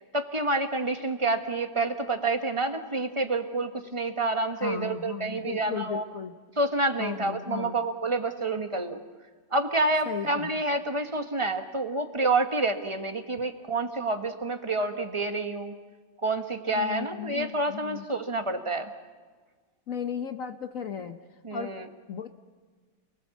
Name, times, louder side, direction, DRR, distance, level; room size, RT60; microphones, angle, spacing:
voice 1, 0.1-6.0 6.6-9.0 9.5-15.7 16.2-18.9 21.4-21.8, right 2 dB, 20° right, 6 dB, 1.1 m, -28 dB
voice 2, 4.6-6.3 7.0-7.8 10.0-10.6 16.7-18.1 19.9-21.2 21.5-21.7 22.1-22.3, left 8 dB, 55° left, 8 dB, 1.1 m, -35 dB
28.5 x 19.0 x 7.2 m, 1.4 s
omnidirectional pair, 1.9 m